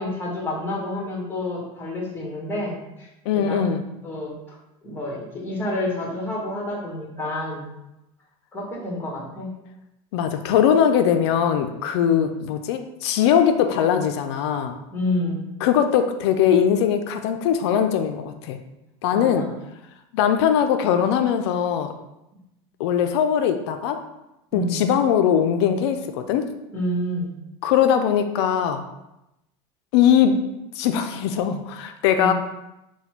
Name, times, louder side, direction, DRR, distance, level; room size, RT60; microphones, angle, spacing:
voice 1, 0.0-3.1 3.3-3.6 4.0-4.3 4.8-7.7 8.5-9.5 12.0-12.4 14.9-15.5 19.1-19.5 24.5-24.8 26.7-27.3 32.1-32.3, left 1 dB, 15° left, -3 dB, 1.4 m, -29 dB
voice 2, 3.3-3.8 10.1-14.8 15.6-18.6 19.0-19.5 20.1-21.9 22.8-24.0 24.5-26.5 27.6-28.8 29.9-30.4 30.7-32.3, left 8 dB, 90° left, 7 dB, 0.4 m, -20 dB
4.1 x 2.2 x 4.3 m, 0.90 s
supercardioid pair, 130°, 14 cm